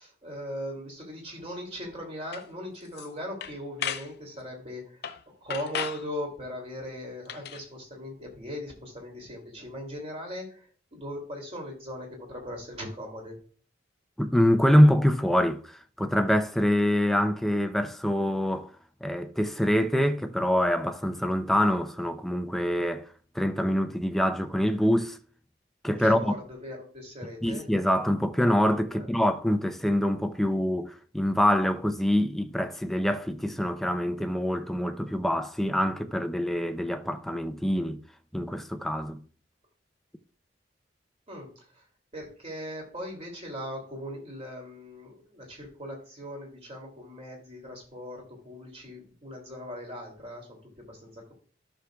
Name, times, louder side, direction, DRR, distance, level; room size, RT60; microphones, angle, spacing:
voice 1, 0.0-5.0 5.4-13.4 26.0-27.7 28.9-29.1 41.3-41.8 42.1-51.3, equal, 35° right, 2.7 m, -39 dB
sound 1, 2.3-2.4 2.9-3.1 3.4-4.1 5.0-5.2 5.5-6.0 7.3-7.6, left 8 dB, 65° left, 0.6 m, -34 dB
voice 2, 14.2-18.7 19.0-23.1 23.3-25.2 25.8-26.3 27.4-38.0 38.3-39.2, equal, ahead, 0.5 m, -25 dB
14.0 x 6.4 x 2.3 m
head